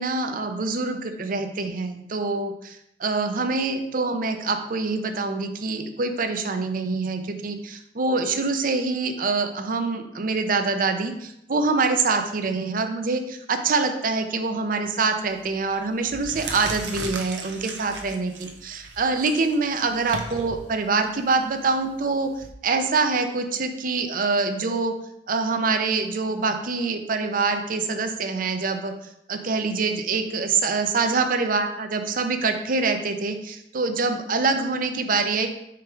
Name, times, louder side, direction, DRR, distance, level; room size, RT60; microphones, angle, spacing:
voice 1, 0.0-22.3 22.6-24.9 25.3-28.9 29.3-35.5, right 4 dB, 50° right, 7 dB, 0.6 m, -25 dB
sound 1, 15.2-15.5 16.0-22.5, right 3 dB, 90° right, 0.8 m, -37 dB
4.8 x 4.6 x 4.7 m, 0.79 s
head